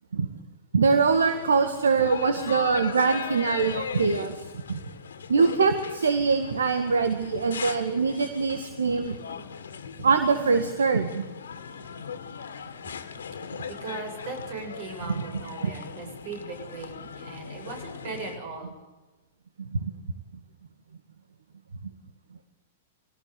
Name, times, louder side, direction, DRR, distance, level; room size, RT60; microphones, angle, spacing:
voice 1, 0.7-4.4 4.7-4.8 5.3-9.2 10.0-11.2 15.6-15.7 19.6-19.9, right 5 dB, 75° right, 8 dB, 1.8 m, -23 dB
sound 1, 1.0-18.4, left 6 dB, 70° left, 2.0 m, -39 dB
voice 2, 13.7-18.7, right 4 dB, 55° right, 5 dB, 7.7 m, -38 dB
23.5 x 18.0 x 8.4 m, 1.2 s
figure-of-eight pair, 105°, 0 cm